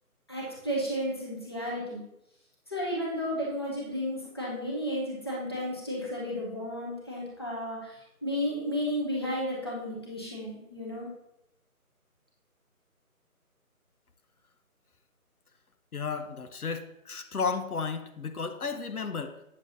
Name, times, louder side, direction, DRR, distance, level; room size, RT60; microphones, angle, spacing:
voice 1, 0.3-2.0 2.7-11.1, equal, 15° left, -5 dB, 0.9 m, -33 dB
voice 2, 15.9-19.4, left 5 dB, 75° left, 8 dB, 0.8 m, -33 dB
8.3 x 6.9 x 2.7 m, 0.83 s
figure-of-eight pair, 165°, 45 cm